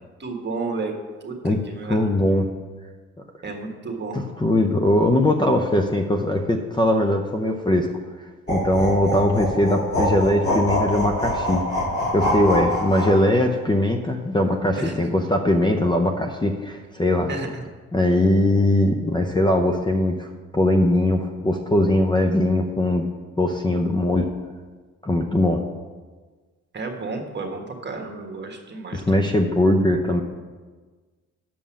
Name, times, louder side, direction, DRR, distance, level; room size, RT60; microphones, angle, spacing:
voice 1, 0.2-0.9 1.2-2.0 3.4-4.2 14.8-15.0 17.3-17.6 26.7-29.3, right 3 dB, 35° right, 2 dB, 1.5 m, -32 dB
voice 2, 1.9-2.5 4.1-7.9 8.5-11.6 12.1-17.3 17.9-23.0 23.4-24.3 25.0-25.6 28.9-30.2, left 1 dB, 15° left, 4 dB, 0.6 m, -20 dB
Monstrous Laugh, 8.5-13.2, equal, 35° left, 3.1 m, -24 dB
6.9 x 5.4 x 7.1 m, 1.4 s
cardioid pair, 90°, 30 cm